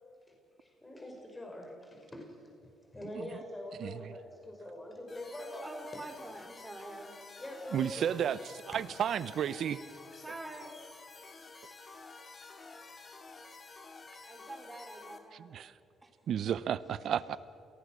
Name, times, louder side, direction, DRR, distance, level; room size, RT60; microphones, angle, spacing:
voice 1, 0.6-2.3 2.6-5.6 7.4-8.1 11.2-13.1, left 1 dB, 20° left, 1 dB, 5.5 m, -45 dB
sound 1, 5.1-15.2, left 3 dB, 40° left, 2.4 m, -51 dB
voice 2, 5.6-7.2 10.2-10.7 14.2-15.7 16.0-16.1, right 2 dB, 15° right, 3 dB, 4.1 m, -46 dB
voice 3, 7.7-9.8 15.3-15.7 16.3-17.4, right 9 dB, 65° right, 17 dB, 0.8 m, -32 dB
28.0 x 18.5 x 6.4 m, 2.6 s
supercardioid pair, 65°, 0 cm